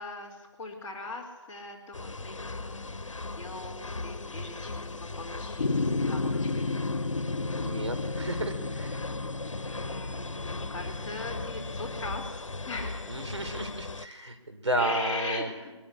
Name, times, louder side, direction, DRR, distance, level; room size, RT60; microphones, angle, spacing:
voice 1, 0.0-6.7 9.6-13.2 14.8-15.8, left 2 dB, 10° left, -6 dB, 2.7 m, -40 dB
sound 1, 1.9-14.1, left 3 dB, 80° left, 1.1 m, -38 dB
sound 2, 5.6-12.0, left 3 dB, 55° left, 2.6 m, -33 dB
voice 2, 7.6-9.0 13.1-15.5, right 1 dB, 70° right, 7 dB, 4.1 m, -32 dB
23.0 x 14.5 x 9.8 m, 1.2 s
figure-of-eight pair, 170°, 16 cm